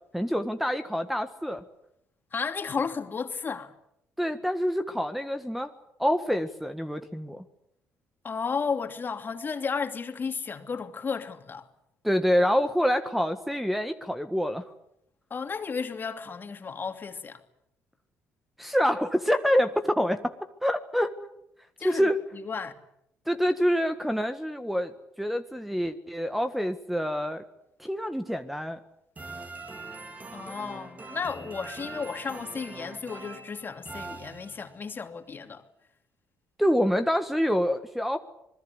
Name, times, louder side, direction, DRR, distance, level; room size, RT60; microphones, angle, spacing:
voice 1, 0.1-1.6 4.2-5.7 6.0-7.4 12.0-14.7 18.6-20.3 20.6-21.1 21.8-22.2 23.3-24.9 25.2-27.4 27.8-28.8 36.6-38.2, equal, ahead, 1.6 m, -26 dB
voice 2, 2.3-3.7 8.2-11.7 15.3-17.4 21.8-22.7 30.3-35.6, left 5 dB, 40° left, 2.9 m, -33 dB
sound 1, 29.2-34.9, right 3 dB, 30° right, 4.0 m, -42 dB
26.5 x 21.0 x 8.4 m
supercardioid pair, 70°, 6 cm